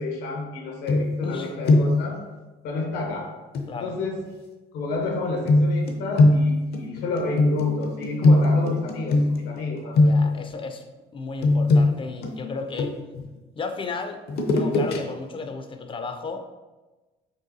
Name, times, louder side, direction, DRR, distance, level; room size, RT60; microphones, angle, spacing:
voice 1, 0.0-2.2 2.6-3.3 3.8-4.2 4.7-10.0 10.2-10.3, left 2 dB, 90° left, 1 dB, 1.0 m, -30 dB
sound 1, 0.9-1.4 1.6-2.1 3.5-3.7 5.5-9.6 9.9-10.5 11.4-13.2 14.3-15.0 15.4-15.5, left 2 dB, 70° left, 0.7 m, -20 dB
voice 2, 3.7-4.0 10.0-10.8 11.1-13.0 13.6-14.2 14.5-16.5, left 4 dB, 30° left, 6 dB, 0.4 m, -34 dB
5.3 x 3.4 x 2.7 m, 1.2 s
cardioid pair, 110°, 17 cm